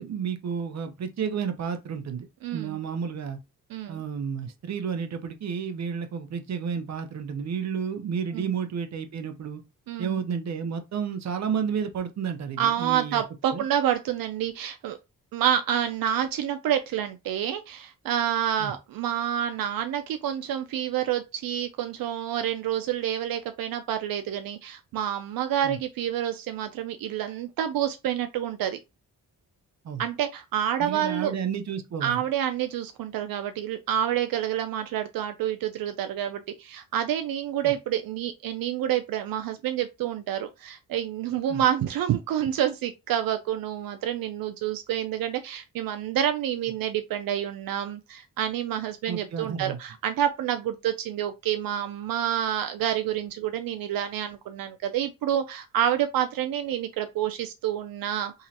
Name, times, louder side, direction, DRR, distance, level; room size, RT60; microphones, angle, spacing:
voice 1, 0.0-2.3 2.5-3.4 3.9-9.6 10.0-13.2 13.5-13.6 18.6-18.7 25.6-25.8 29.8-30.0 30.8-32.2 37.6-37.7 41.5-41.6 49.1-49.8, right 7 dB, 50° right, 0.7 m, -31 dB
voice 2, 2.4-2.8 3.7-4.0 8.3-8.5 9.9-10.2 12.6-15.0 15.3-28.8 30.0-31.3 32.0-58.3, right 10 dB, 85° right, 0.5 m, -28 dB
3.8 x 3.0 x 2.8 m
cardioid pair, 120°, 34 cm